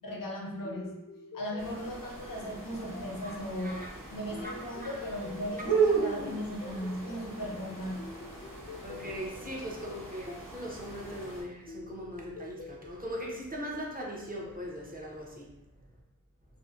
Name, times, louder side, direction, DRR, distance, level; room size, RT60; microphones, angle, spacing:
voice 1, 0.0-1.0 1.3-8.1, equal, 80° left, -2 dB, 0.6 m, -37 dB
sound 1, 0.6-15.4, left 4 dB, 40° left, 0.4 m, -50 dB
sound 2, 1.6-11.4, right 5 dB, 70° right, 0.9 m, -35 dB
voice 2, 4.4-5.0 5.6-5.8 8.8-15.6, equal, 25° right, -3 dB, 0.6 m, -40 dB
2.5 x 2.0 x 2.3 m, 0.93 s
wide cardioid pair, 40°, 33 cm